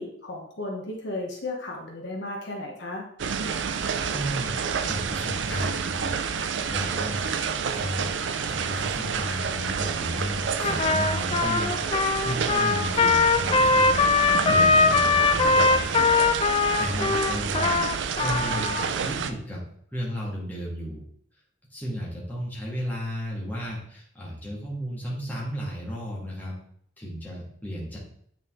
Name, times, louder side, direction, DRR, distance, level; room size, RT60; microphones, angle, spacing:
voice 1, 0.0-3.1, left 2 dB, 60° left, 0 dB, 1.1 m, -34 dB
sound 1, 3.2-19.3, right 6 dB, 65° right, 0.4 m, -29 dB
voice 2, 3.8-4.6 4.9-6.1 6.7-7.3 7.7-8.1 8.5-14.0 14.5-16.0 16.8-19.6 19.9-21.0 21.7-26.5 27.0-28.0, equal, 10° left, -5 dB, 1.8 m, -34 dB
Trumpet, 10.6-18.9, left 4 dB, 30° left, 0.3 m, -22 dB
8.6 x 4.0 x 3.7 m, 0.64 s
head